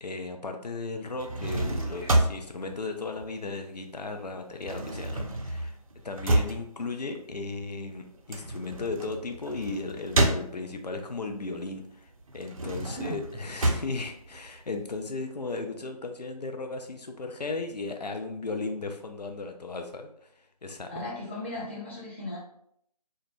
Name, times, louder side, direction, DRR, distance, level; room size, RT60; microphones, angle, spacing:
voice 1, 0.0-5.8 6.0-21.1, left 3 dB, 90° left, 4 dB, 0.5 m, -36 dB
sound 1, 1.1-3.9 4.2-11.0 11.5-15.0, right 1 dB, 60° right, 0.5 m, -30 dB
voice 2, 12.8-13.2 20.9-22.4, left 1 dB, 20° left, -7 dB, 0.5 m, -36 dB
2.2 x 2.1 x 3.1 m, 0.71 s
figure-of-eight pair, 155°, 21 cm